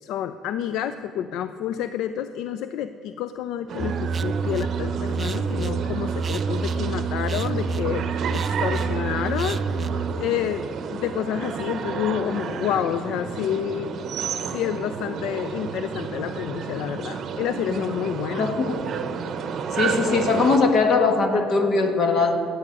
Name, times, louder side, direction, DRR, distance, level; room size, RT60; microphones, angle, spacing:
voice 1, 0.0-13.9 14.4-18.6, left 10 dB, 80° left, 11 dB, 0.4 m, -29 dB
sound 1, 3.7-20.6, right 6 dB, 50° right, 0.7 m, -31 dB
sound 2, 3.8-10.1, right 5 dB, 30° right, 0.4 m, -27 dB
voice 2, 18.4-18.8 19.7-22.5, left 4 dB, 55° left, 4 dB, 1.5 m, -21 dB
15.5 x 8.4 x 5.3 m, 2.8 s
cardioid pair, 120°, 0 cm